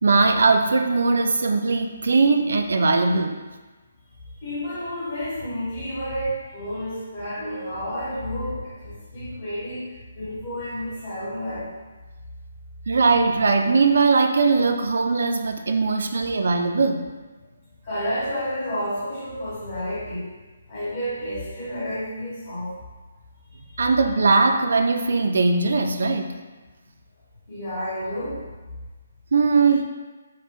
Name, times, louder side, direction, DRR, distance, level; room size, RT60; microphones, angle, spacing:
voice 1, 0.0-3.4 12.9-17.1 23.8-26.4 29.3-29.8, right 4 dB, 60° right, 6 dB, 0.3 m, -20 dB
voice 2, 4.4-9.8 10.1-11.7 17.8-20.3 20.7-22.7 27.5-28.4, equal, 35° left, -9 dB, 1.3 m, -30 dB
2.8 x 2.6 x 3.3 m, 1.3 s
figure-of-eight pair, 140°, 0 cm